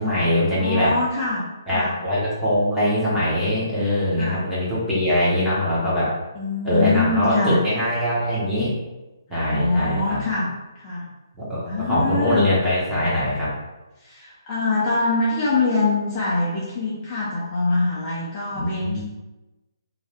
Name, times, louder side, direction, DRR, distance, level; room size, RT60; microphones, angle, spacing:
voice 1, 0.0-0.9 1.7-6.1 6.6-8.7 9.3-10.2 11.4-13.5 18.5-19.0, left 1 dB, 5° right, -10 dB, 1.0 m, -22 dB
voice 2, 0.6-1.4 1.7-1.9 4.2-4.5 6.3-7.6 9.3-10.5 10.8-11.1 11.7-12.4 14.0-19.0, left 3 dB, 25° left, -8 dB, 0.6 m, -24 dB
2.6 x 2.3 x 3.4 m, 1.1 s
hypercardioid pair, 155°, 2 cm